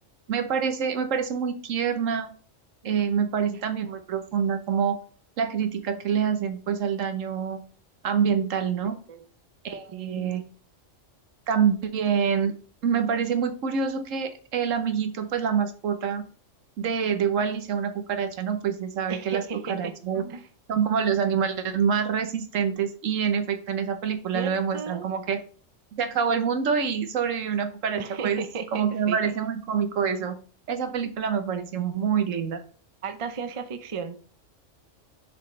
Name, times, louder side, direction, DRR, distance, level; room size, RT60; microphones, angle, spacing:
voice 1, 0.3-2.3 2.8-5.0 5.4-7.6 8.0-9.0 9.6-10.4 11.5-12.5 12.8-16.2 16.8-19.4 19.7-20.2 20.7-25.4 25.9-28.4 28.7-30.4 30.7-32.6, right 7 dB, 85° right, 8 dB, 1.2 m, -26 dB
voice 2, 9.9-10.5 19.1-20.5 24.3-25.1 28.0-29.3 33.0-34.2, right 5 dB, 40° right, 9 dB, 0.5 m, -35 dB
7.3 x 4.9 x 3.1 m, 0.41 s
omnidirectional pair, 1.3 m